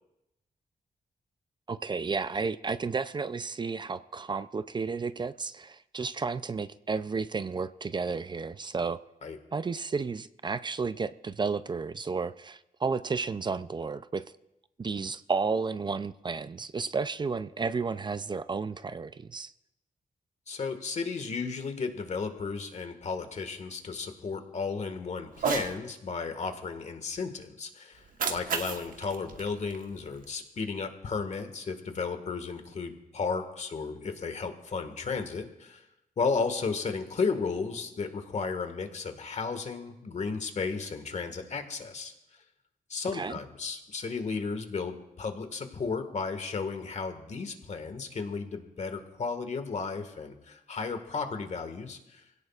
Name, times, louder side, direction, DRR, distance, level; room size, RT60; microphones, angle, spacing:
voice 1, 1.7-9.0 9.5-14.2 14.8-19.5 43.1-43.4, right 4 dB, 30° right, 13 dB, 0.4 m, -32 dB
voice 2, 20.5-35.8 36.2-42.1 42.9-52.2, left 4 dB, 50° left, 7 dB, 1.7 m, -34 dB
Cat, 25.3-25.7 27.9-30.3, right 6 dB, 70° right, 1.2 m, -34 dB
25.0 x 16.5 x 2.4 m, 0.89 s
cardioid pair, 90°, 15 cm